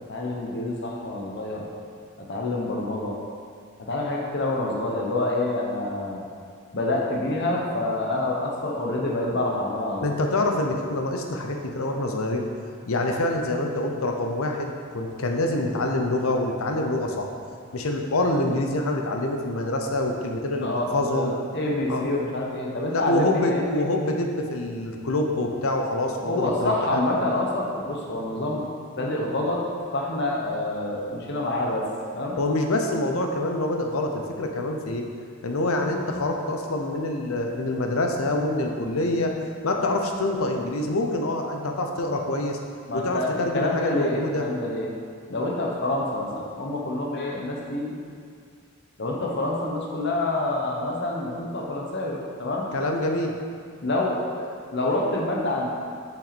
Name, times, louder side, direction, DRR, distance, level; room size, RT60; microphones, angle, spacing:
voice 1, 0.1-1.7 2.2-3.1 3.8-6.2 6.7-10.2 20.6-23.8 26.2-28.7 29.0-29.6 29.9-31.9 32.1-32.4 42.9-44.9 45.3-47.9 49.0-52.7 53.8-55.7, left 2 dB, 55° left, -2 dB, 1.1 m, -27 dB
voice 2, 10.0-12.5 12.9-17.3 17.7-21.3 21.9-22.0 22.9-27.1 32.4-35.0 35.4-39.3 39.6-42.6 42.9-44.4 52.7-53.3, left 2 dB, 85° left, 3 dB, 0.8 m, -26 dB
6.5 x 5.8 x 4.2 m, 2.2 s
head